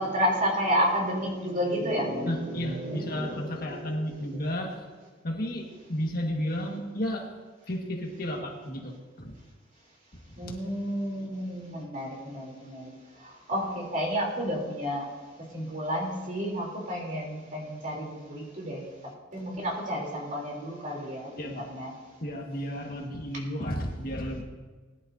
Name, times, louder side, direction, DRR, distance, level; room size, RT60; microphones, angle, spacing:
voice 1, 0.0-4.4 10.4-15.0 15.4-18.9 19.3-21.9, equal, 40° right, -2 dB, 3.4 m, -31 dB
voice 2, 2.3-4.9 5.2-7.3 7.7-9.3 10.3-10.5 21.4-21.7 22.2-24.4, equal, 45° left, 0 dB, 1.7 m, -33 dB
21.0 x 11.0 x 2.8 m, 1.3 s
head